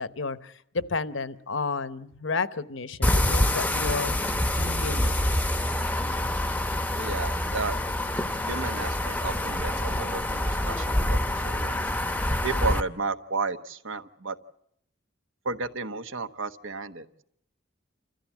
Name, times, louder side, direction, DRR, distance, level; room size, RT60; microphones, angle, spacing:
voice 1, 0.0-4.2 4.6-5.3, left 4 dB, 65° left, 14 dB, 1.0 m, -32 dB
sound 1, 3.0-12.8, left 1 dB, 10° left, 0.8 m, -26 dB
voice 2, 6.9-7.8 8.4-11.8 12.4-14.4 15.4-17.2, right 4 dB, 70° right, 10 dB, 1.2 m, -33 dB
28.5 x 14.5 x 8.4 m, 0.73 s
head